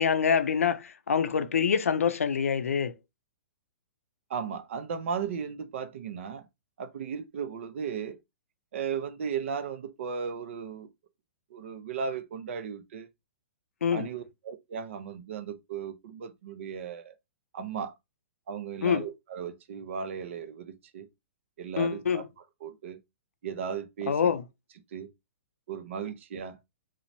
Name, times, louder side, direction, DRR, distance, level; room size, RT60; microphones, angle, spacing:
voice 1, 0.0-2.9 13.8-14.1 18.8-19.0 21.8-22.2 24.1-24.4, left 7 dB, 85° left, 0.4 m, -25 dB
voice 2, 4.3-6.5 6.8-8.2 8.7-10.9 11.5-13.1 13.9-17.2 17.5-17.9 18.5-21.1 21.6-22.3 22.6-23.0 23.4-24.3 24.9-25.1 25.7-26.6, right 7 dB, 60° right, 0.5 m, -36 dB
3.0 x 2.1 x 2.6 m
hypercardioid pair, 130°, 7 cm